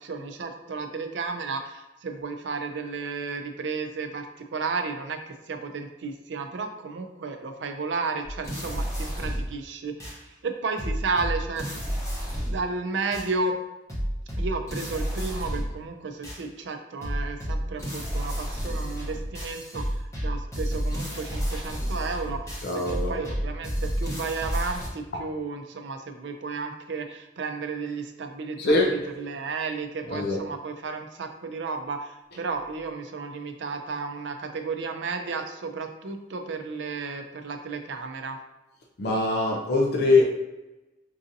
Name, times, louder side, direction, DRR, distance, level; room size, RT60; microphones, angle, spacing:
voice 1, 0.0-11.8 12.4-13.6 14.4-38.4, right 4 dB, 80° right, 6 dB, 0.4 m, -33 dB
sound 1, 8.2-9.6 10.0-10.2 10.8-12.7 13.1-13.3 13.9-15.8 16.2-16.4 17.0-24.9, equal, 15° left, 0.9 m, -31 dB
voice 2, 22.6-23.2 28.6-28.9 30.1-30.4 39.0-40.2, left 2 dB, 60° left, 0 dB, 0.5 m, -22 dB
4.7 x 2.6 x 2.6 m, 1.0 s
head